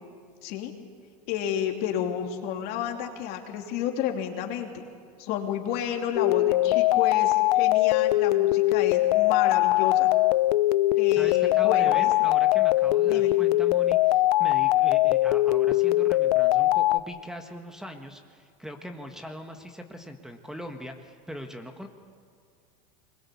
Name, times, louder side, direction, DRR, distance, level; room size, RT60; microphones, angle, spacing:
voice 1, 0.4-0.7 1.3-4.8 5.2-10.1 11.0-12.1 13.0-13.3, left 9 dB, 55° left, 3 dB, 2.9 m, -31 dB
sound 1, 6.2-17.0, left 16 dB, 85° left, 0.6 m, -21 dB
voice 2, 11.1-21.9, equal, 5° right, 5 dB, 1.5 m, -40 dB
24.0 x 21.5 x 8.5 m, 2.1 s
supercardioid pair, 125°, 19 cm